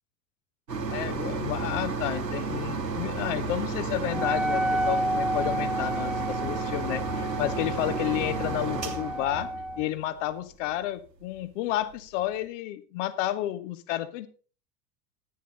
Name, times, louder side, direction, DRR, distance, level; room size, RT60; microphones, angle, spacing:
sound 1, 0.7-10.2 10.8-10.9 11.3-11.4, right 3 dB, 80° right, 2.6 m, -32 dB
voice 1, 0.9-9.5 9.8-14.3, left 14 dB, 50° left, 12 dB, 1.3 m, -31 dB
Wind instrument woodwind instrument, 4.1-9.9, right 1 dB, ahead, 1.4 m, -31 dB
13.5 x 10.0 x 4.0 m, 0.37 s
figure-of-eight pair, 85°, 49 cm